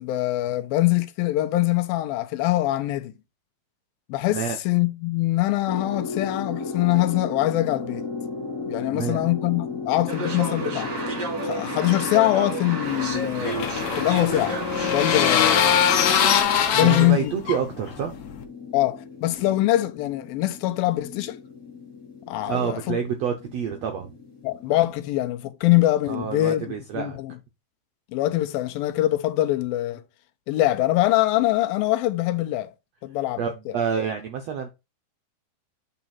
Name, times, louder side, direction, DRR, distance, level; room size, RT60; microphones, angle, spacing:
voice 1, 0.0-3.1 4.1-8.0 8.6-10.9 11.4-15.9 16.7-17.3 18.7-21.4 22.3-23.0 24.4-27.3 28.1-30.0 30.5-32.7 33.0-33.4, left 16 dB, 90° left, 2.5 m, -23 dB
sound 1, 5.7-24.9, left 4 dB, 30° left, 2.7 m, -36 dB
voice 2, 8.9-9.3 16.7-18.1 22.4-24.1 26.1-27.2 33.4-34.7, right 7 dB, 80° right, 1.4 m, -28 dB
sound 2, 10.1-16.4, right 3 dB, 45° right, 1.5 m, -31 dB
sound 3, 12.9-18.4, left 8 dB, 65° left, 2.0 m, -23 dB
9.0 x 4.1 x 4.2 m
omnidirectional pair, 4.2 m